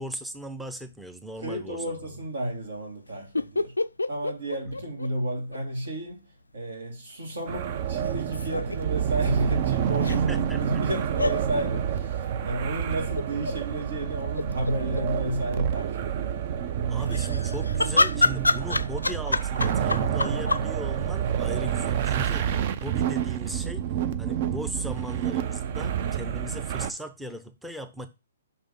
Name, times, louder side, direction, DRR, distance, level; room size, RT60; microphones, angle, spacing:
voice 1, 0.0-1.8 4.6-4.7 10.1-10.8 16.9-23.8 24.2-28.1, right 1 dB, 5° right, 0.6 m, -38 dB
voice 2, 1.4-3.8 4.1-16.4, right 1 dB, 70° right, 2.4 m, -32 dB
sound 1, 3.3-5.6 5.8-5.9 8.0-8.8 10.0-10.2 11.2-11.4 13.2-13.6 14.0-14.1 14.3-15.0 17.0-20.7, left 2 dB, 90° left, 0.3 m, -27 dB
sound 2, 7.5-26.9, right 9 dB, 45° right, 0.6 m, -28 dB
5.6 x 3.5 x 5.2 m
figure-of-eight pair, 125°, 0 cm